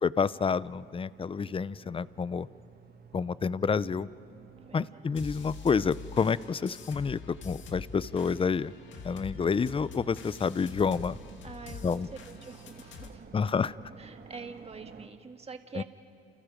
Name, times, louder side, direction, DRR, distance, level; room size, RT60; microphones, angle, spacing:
voice 1, 0.0-2.5 3.1-4.1 4.7-8.7 9.0-11.2 11.8-12.1 13.3-13.7 15.8-15.9, left 5 dB, 25° left, 18 dB, 0.6 m, -29 dB
sound 1, 0.5-15.1, right 6 dB, 50° right, 1.6 m, -53 dB
voice 2, 4.6-5.1 11.4-13.3 14.0-15.8, right 4 dB, 30° right, 6 dB, 1.8 m, -46 dB
sound 2, 5.2-13.1, left 5 dB, 70° left, 2.3 m, -45 dB
29.0 x 29.0 x 5.2 m, 2.6 s
cardioid pair, 90°, 20 cm